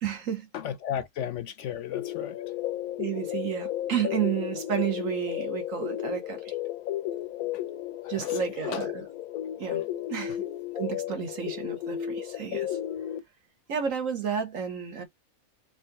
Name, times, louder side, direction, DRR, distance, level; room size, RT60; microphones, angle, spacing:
voice 1, 0.0-0.5 3.0-6.5 8.1-9.0 9.6-9.8 10.1-10.4 10.8-12.8 13.7-15.0, right 8 dB, 65° right, 1.5 m, -31 dB
voice 2, 0.5-2.4 8.0-8.9, left 10 dB, 65° left, 0.8 m, -34 dB
sound 1, 1.9-13.2, left 12 dB, 90° left, 1.1 m, -33 dB
4.9 x 2.5 x 4.0 m
omnidirectional pair, 1.5 m